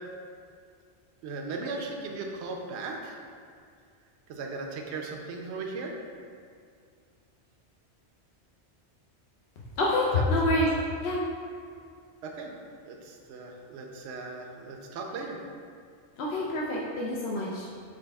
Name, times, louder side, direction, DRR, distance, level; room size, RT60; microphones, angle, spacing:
voice 1, 1.2-3.2 4.3-5.9 10.1-10.2 12.2-12.5 12.8-15.4, right 3 dB, 75° right, 2 dB, 0.8 m, -37 dB
voice 2, 9.8-10.7 11.0-11.2 16.2-17.8, left 2 dB, 70° left, -5 dB, 0.8 m, -27 dB
4.0 x 3.3 x 3.4 m, 2.2 s
omnidirectional pair, 1.1 m